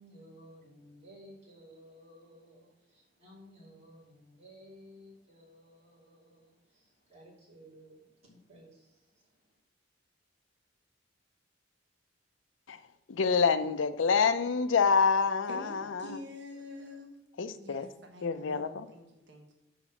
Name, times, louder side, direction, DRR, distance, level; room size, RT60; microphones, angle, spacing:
voice 1, 0.0-9.1, equal, 35° right, 3.1 m, -55 dB
voice 2, 13.1-16.2 17.4-17.9 18.2-18.9, left 5 dB, 85° left, 0.5 m, -27 dB
voice 3, 15.5-17.1 17.5-19.5, left 1 dB, 65° right, 1.1 m, -47 dB
6.0 x 5.0 x 5.9 m
head